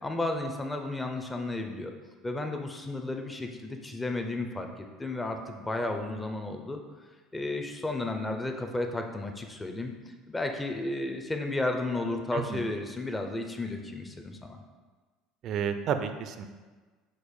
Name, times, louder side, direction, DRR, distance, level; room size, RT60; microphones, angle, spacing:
voice 1, 0.0-1.9 2.2-6.8 7.3-9.9 10.3-14.6, left 2 dB, 15° left, 4 dB, 0.5 m, -33 dB
voice 2, 12.3-12.6 15.4-16.5, right 7 dB, 50° right, 9 dB, 0.3 m, -31 dB
5.1 x 2.1 x 4.7 m, 1.4 s
supercardioid pair, 110°, 0 cm